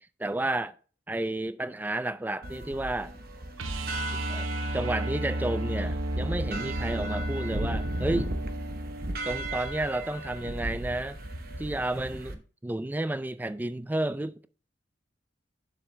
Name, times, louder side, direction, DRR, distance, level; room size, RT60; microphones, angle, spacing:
voice 1, 0.2-0.7 1.1-3.1 4.3-4.5 4.7-8.3 9.2-11.2 11.6-14.5, right 1 dB, 10° right, 0.3 m, -31 dB
sound 1, 2.4-12.3, right 1 dB, 50° right, 1.0 m, -36 dB
sound 2, 3.6-9.5 12.0-12.1, right 1 dB, 80° right, 0.9 m, -33 dB
7.3 x 6.3 x 3.2 m
head